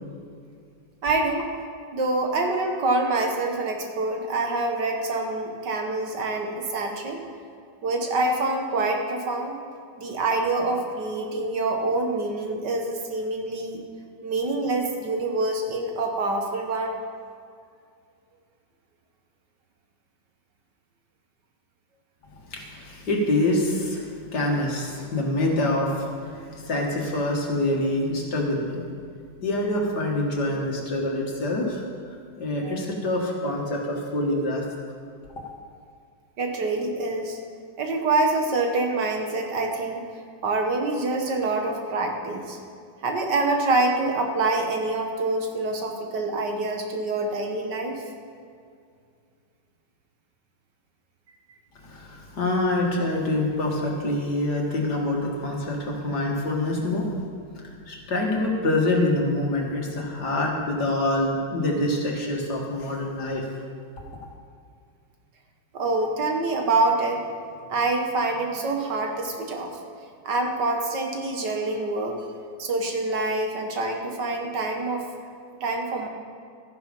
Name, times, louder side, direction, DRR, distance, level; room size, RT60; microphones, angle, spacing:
voice 1, 1.0-1.4 1.9-7.2 7.8-9.6 10.0-13.8 14.2-16.9 32.6-33.0 36.4-37.4 37.8-40.0 40.4-42.6 43.0-48.0 65.7-67.2 67.7-69.7 70.2-72.2 72.6-75.1 75.6-76.1, right 2 dB, 65° right, 3 dB, 1.9 m, -26 dB
voice 2, 22.5-28.8 29.4-31.8 32.4-34.6 51.8-57.1 57.6-63.5, left 1 dB, 60° left, -1 dB, 2.4 m, -26 dB
14.0 x 10.5 x 5.4 m, 2.3 s
omnidirectional pair, 2.1 m